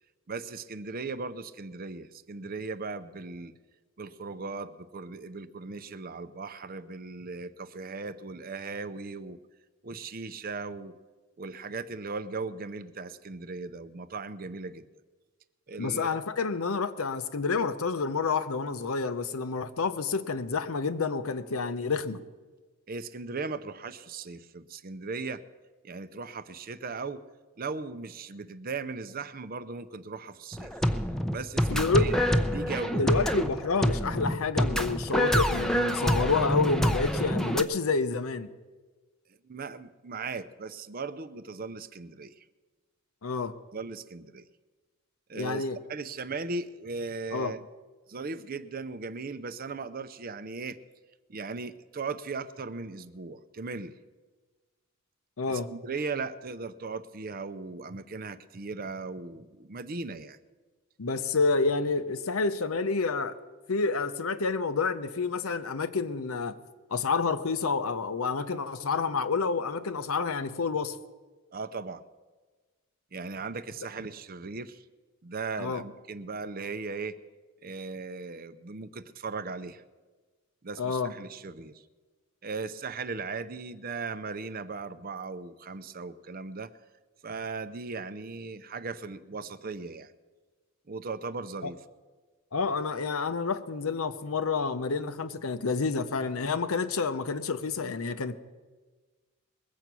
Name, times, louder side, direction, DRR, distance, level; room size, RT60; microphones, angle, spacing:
voice 1, 0.3-3.5 4.0-9.4 9.8-10.9 11.4-14.9 15.7-16.2 22.9-25.4 25.8-27.2 27.6-30.8 31.3-32.1 32.5-33.2 39.4-42.4 43.7-44.4 45.3-47.7 48.1-50.8 51.3-53.9 55.5-60.4 71.5-72.0 73.1-74.8 75.2-77.2 77.6-79.8 80.6-81.8 82.4-86.7 87.2-90.1 90.9-91.8, right 4 dB, 45° right, 13 dB, 0.6 m, -38 dB
voice 2, 15.8-22.2 31.7-32.1 32.9-38.5 43.2-43.5 45.3-45.8 47.3-47.5 55.4-55.7 61.0-63.4 63.7-66.6 66.9-70.9 75.6-75.8 80.8-81.1 92.5-98.4, left 4 dB, 85° left, 11 dB, 0.8 m, -29 dB
sound 1, 30.5-37.6, equal, ahead, 0.6 m, -27 dB
21.0 x 8.2 x 6.1 m, 1.3 s
head